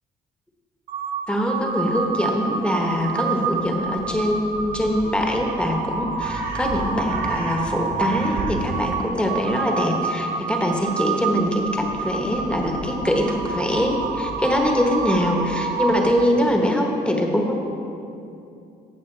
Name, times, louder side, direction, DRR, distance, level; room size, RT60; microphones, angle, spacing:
Crow, 0.9-16.4, right 4 dB, 75° right, 1.7 m, -28 dB
voice 1, 1.3-17.6, equal, 5° left, 1 dB, 1.2 m, -23 dB
16.0 x 6.5 x 3.3 m, 2.7 s
cardioid pair, 110°, 17 cm